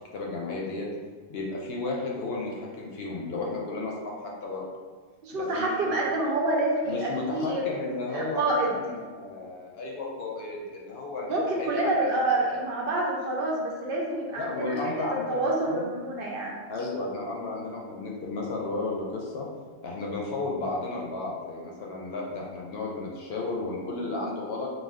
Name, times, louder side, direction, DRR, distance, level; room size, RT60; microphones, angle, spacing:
voice 1, 0.1-0.9 1.3-4.7 5.3-5.9 6.9-11.3 11.6-12.2 12.5-12.6 14.4-15.9 16.7-19.5 19.8-24.7, left 3 dB, 65° left, -2 dB, 0.7 m, -33 dB
voice 2, 5.2-7.6 8.1-9.0 11.3-14.8 15.3-16.5, right 2 dB, 60° right, -2 dB, 0.7 m, -27 dB
2.5 x 2.2 x 3.3 m, 1.4 s
omnidirectional pair, 1.2 m